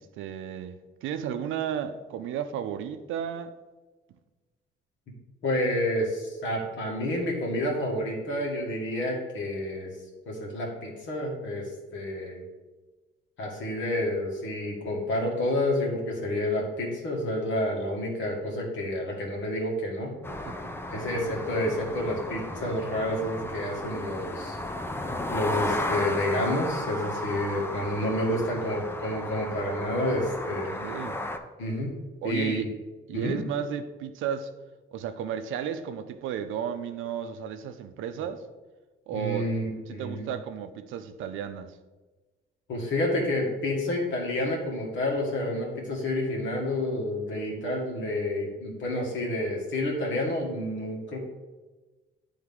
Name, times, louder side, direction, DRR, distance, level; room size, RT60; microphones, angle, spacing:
voice 1, 0.0-3.6 20.3-20.7 21.1-21.3 28.4-28.7 30.7-31.2 32.2-32.7 33.1-34.5 34.9-38.4 39.1-39.5 39.9-41.8, right 8 dB, 85° right, 0.5 m, -34 dB
voice 2, 5.4-9.9 10.3-12.4 13.4-20.1 20.9-24.6 25.3-30.8 31.6-32.0 32.2-32.7 33.1-33.4 39.1-40.3 42.7-51.2, left 1 dB, 70° left, 1.9 m, -29 dB
sound 1, 20.2-31.4, left 1 dB, 10° left, 0.5 m, -34 dB
9.6 x 3.5 x 3.6 m
cardioid pair, 90°, 20 cm